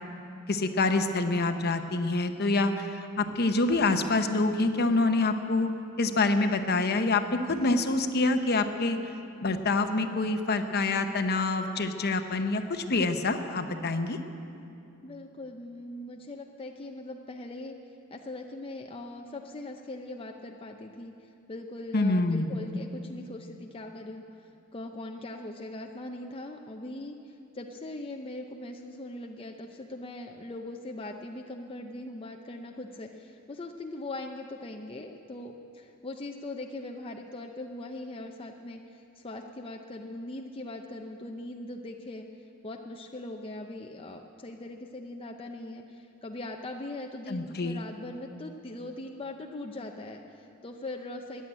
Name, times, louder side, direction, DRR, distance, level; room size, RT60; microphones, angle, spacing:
voice 1, 0.5-5.7 6.0-9.0 9.4-14.2 21.9-22.5 47.3-47.8, left 3 dB, 50° left, 7 dB, 0.9 m, -26 dB
voice 2, 15.0-17.8 18.1-42.3 42.6-51.4, left 2 dB, 25° left, 2 dB, 0.6 m, -41 dB
15.0 x 10.5 x 8.6 m, 2.7 s
head